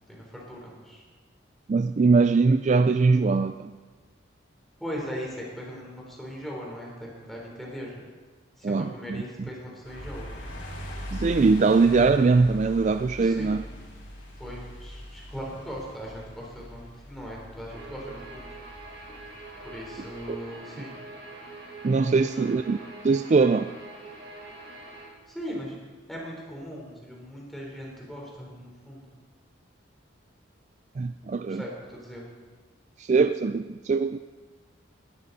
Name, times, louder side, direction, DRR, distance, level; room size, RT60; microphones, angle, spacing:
voice 1, 0.1-1.0 4.8-8.0 8.6-10.3 13.2-13.5 14.4-18.5 19.6-21.0 22.3-22.5 25.3-25.7 26.1-29.1 31.5-32.2, equal, ahead, -3 dB, 3.9 m, -39 dB
voice 2, 1.7-3.7 8.6-9.2 11.1-13.6 20.3-20.4 21.8-22.8 23.0-23.7 31.0-31.6 33.0-34.2, right 4 dB, 35° right, 9 dB, 0.3 m, -22 dB
sound 1, 9.8-20.3, equal, 70° left, 4.4 m, -41 dB
Guitar, 17.7-25.0, right 2 dB, 60° right, 5.7 m, -44 dB
18.5 x 13.0 x 4.2 m, 1.4 s
head